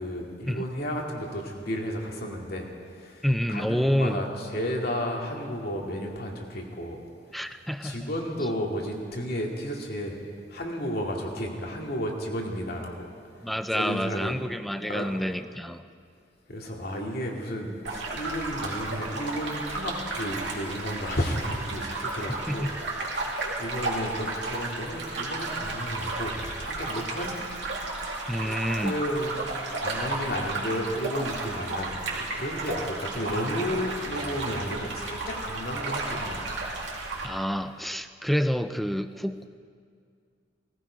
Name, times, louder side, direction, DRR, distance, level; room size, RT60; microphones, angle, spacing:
voice 1, 0.0-7.1 7.3-10.2 10.5-13.1 13.7-14.4 14.9-15.1 16.5-27.3 28.4-29.4 29.8-36.4, equal, 60° left, 0 dB, 2.3 m, -33 dB
voice 2, 3.2-4.2 7.3-8.1 13.4-15.8 22.5-22.8 28.3-29.0 37.2-39.4, equal, ahead, 10 dB, 0.5 m, -28 dB
sound 1, 17.8-37.3, right 2 dB, 70° right, 2.6 m, -33 dB
18.5 x 15.5 x 5.0 m, 2.2 s
head